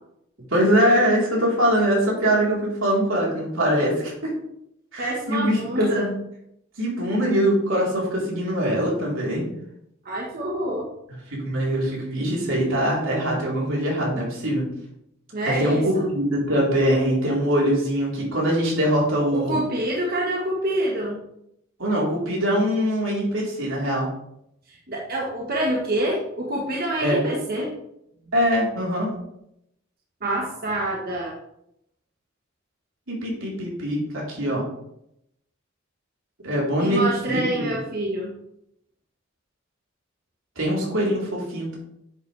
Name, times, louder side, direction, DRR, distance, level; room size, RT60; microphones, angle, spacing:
voice 1, 0.5-4.3 4.9-6.1 6.8-9.4 11.3-14.7 15.4-19.6 21.8-24.1 27.0-27.3 28.3-29.1 33.1-34.6 36.4-37.7 40.6-41.8, equal, 80° right, -4 dB, 4.1 m, -23 dB
voice 2, 5.0-6.1 10.0-10.9 15.3-16.1 19.3-21.2 24.7-27.7 30.2-31.3 36.8-38.3, right 1 dB, 50° right, -3 dB, 1.5 m, -26 dB
10.0 x 8.1 x 3.5 m, 0.78 s
head